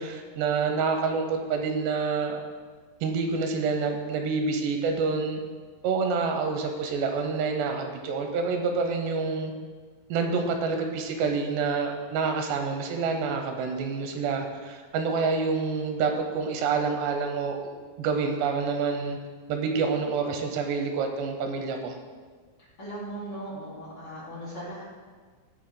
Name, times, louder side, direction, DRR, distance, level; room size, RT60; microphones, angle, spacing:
voice 1, 0.0-2.4 3.0-5.4 5.8-9.5 10.1-17.6 18.0-19.2 19.5-22.0, right 4 dB, 85° right, 4 dB, 3.0 m, -27 dB
voice 2, 22.8-24.8, right 1 dB, 35° left, -7 dB, 3.4 m, -38 dB
17.0 x 7.8 x 2.2 m, 1.5 s
omnidirectional pair, 4.8 m